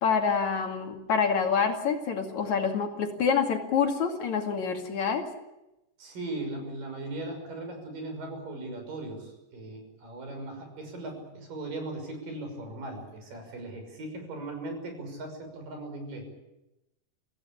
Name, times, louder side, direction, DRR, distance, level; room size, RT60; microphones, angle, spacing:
voice 1, 0.0-5.3, left 6 dB, 60° left, 3 dB, 3.6 m, -27 dB
voice 2, 6.0-16.3, right 2 dB, 85° right, 4 dB, 7.8 m, -38 dB
26.0 x 17.5 x 8.4 m, 0.96 s
omnidirectional pair, 3.8 m